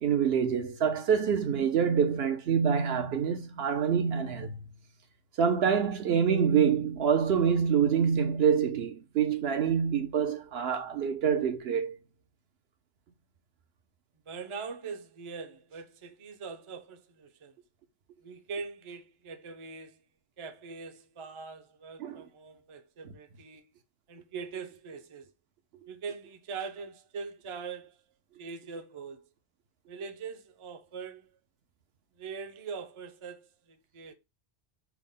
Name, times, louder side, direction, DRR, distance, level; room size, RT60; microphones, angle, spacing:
voice 1, 0.0-4.5 5.4-12.0 22.0-22.2, right 7 dB, 70° right, 0.8 m, -26 dB
voice 2, 14.3-17.5 18.2-20.0 20.4-23.7 24.1-25.3 25.9-28.0 28.4-29.3 29.9-31.3 32.2-34.1, right 5 dB, 35° right, 0.5 m, -42 dB
5.9 x 2.1 x 3.6 m
omnidirectional pair, 1.2 m